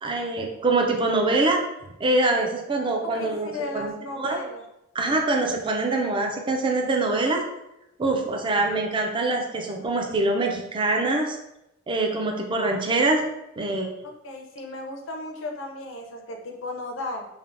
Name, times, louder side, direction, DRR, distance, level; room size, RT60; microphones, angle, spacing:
voice 1, 0.0-1.6 2.0-4.4 4.9-7.4 8.0-11.4 11.9-13.2 13.6-13.9, right 2 dB, 25° right, 2 dB, 0.4 m, -24 dB
voice 2, 3.0-4.6 14.2-17.3, left 2 dB, 75° left, 2 dB, 0.5 m, -35 dB
3.3 x 2.1 x 2.5 m, 0.88 s
head